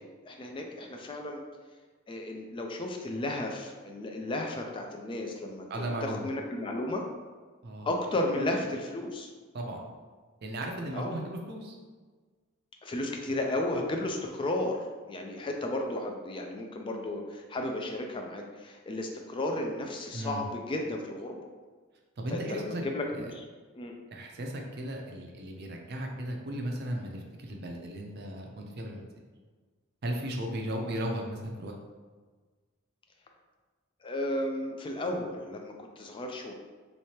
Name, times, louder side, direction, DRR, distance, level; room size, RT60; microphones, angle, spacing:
voice 1, 0.3-1.4 2.1-7.0 7.9-9.3 10.9-11.2 12.8-21.5 22.3-23.4 23.7-23.9 34.0-36.5, left 1 dB, 25° left, 2 dB, 0.3 m, -34 dB
voice 2, 5.7-6.2 7.6-7.9 9.5-9.9 10.4-11.8 20.1-20.4 22.2-22.8 23.1-23.3 24.1-29.0 30.0-31.7, right 1 dB, 55° right, 2 dB, 0.5 m, -36 dB
3.2 x 3.1 x 2.8 m, 1.4 s
head